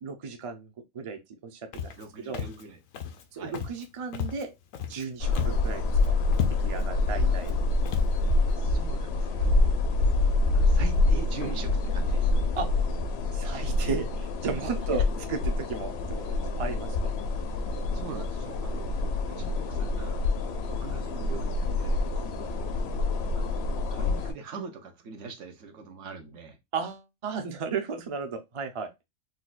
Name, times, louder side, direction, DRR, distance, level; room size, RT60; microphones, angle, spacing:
voice 1, 0.0-1.9 2.2-2.4 3.3-4.5 4.9-6.2 6.6-7.6 12.6-12.7 13.3-15.0 15.3-17.1 26.7-28.9, right 5 dB, 45° right, 0.4 m, -34 dB
Walk footsteps, 1.7-2.1 2.3-2.6 2.9-3.2 3.5-3.9 4.1-5.0 5.3-5.7 6.0-6.1 6.3-6.9 7.4-7.5 7.9-8.1, left 8 dB, 90° left, 1.0 m, -33 dB
voice 2, 2.0-2.8 3.3-3.5 7.2-7.4 8.5-9.7 10.5-12.3 14.9-15.0 17.4-17.7 17.9-18.9 19.3-20.3 20.6-22.6 23.3-26.6, right 5 dB, 70° right, 1.1 m, -42 dB
sound 1, 5.2-24.3, left 2 dB, 65° left, 0.7 m, -26 dB
4.1 x 2.2 x 2.4 m
omnidirectional pair, 1.3 m